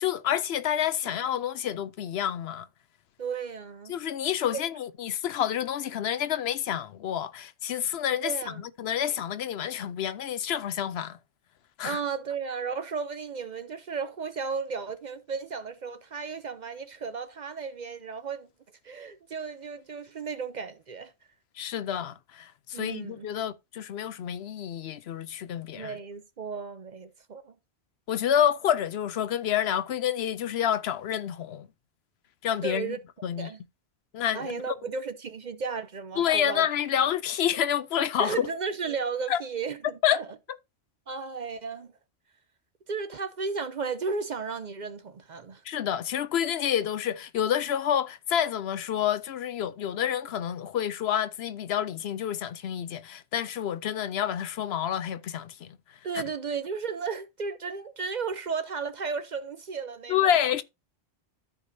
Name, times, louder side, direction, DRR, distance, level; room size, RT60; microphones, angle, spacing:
voice 1, 0.0-2.7 3.9-11.2 11.8-12.0 21.6-26.0 28.1-31.7 32.4-33.0 33.2-33.5 34.1-34.6 36.2-38.5 39.3-39.4 40.0-40.2 45.6-55.8 60.1-60.6, left 10 dB, 70° left, 0.8 m, -28 dB
voice 2, 3.2-4.0 4.5-4.6 8.2-8.6 11.8-18.5 18.8-21.1 22.7-23.3 25.7-27.5 32.6-33.0 33.4-33.6 34.3-36.7 38.2-40.3 41.1-41.9 42.9-45.6 56.0-60.4, right 5 dB, 50° right, 0.6 m, -34 dB
13.5 x 4.9 x 2.7 m
omnidirectional pair, 1.1 m